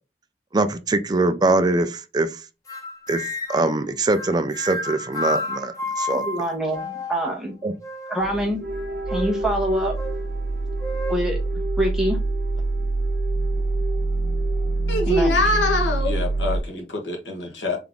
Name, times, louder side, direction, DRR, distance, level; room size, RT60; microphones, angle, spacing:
voice 1, 0.5-2.4 3.1-3.2 3.5-6.3 7.6-7.7, right 2 dB, 25° right, 0.4 m, -22 dB
sound 1, 2.7-3.8 4.1-7.3 7.8-8.4 9.1-9.4 10.0-10.2 10.8-11.1, left 2 dB, 20° left, 1.0 m, -31 dB
voice 2, 6.1-7.5 8.1-8.6 9.1-9.9 11.1-11.4 11.8-12.2 15.1-15.4, equal, 5° right, 1.2 m, -25 dB
sound 2, 8.2-16.6, right 2 dB, 65° right, 1.1 m, -25 dB
voice 3, 14.9-17.8, left 2 dB, 85° left, 1.5 m, -24 dB
3.7 x 3.5 x 3.6 m
head